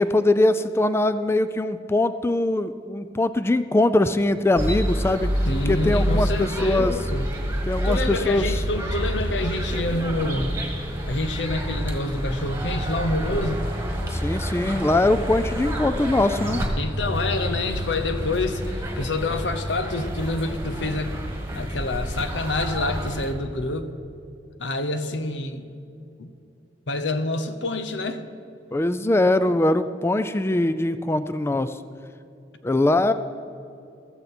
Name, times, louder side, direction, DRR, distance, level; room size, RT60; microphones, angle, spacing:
voice 1, 0.0-5.3 5.7-6.9 7.7-8.6 14.1-16.6 28.7-31.7 32.6-33.1, left 2 dB, 15° left, 12 dB, 0.3 m, -22 dB
sound 1, 4.6-23.3, equal, 15° right, 1.6 m, -28 dB
voice 2, 5.5-7.3 7.8-10.5 11.1-13.6 16.8-21.1 21.5-23.9 24.6-25.7 26.2-26.3 26.9-28.2, left 2 dB, 90° left, 10 dB, 0.9 m, -27 dB
15.0 x 13.5 x 4.3 m, 2.5 s
head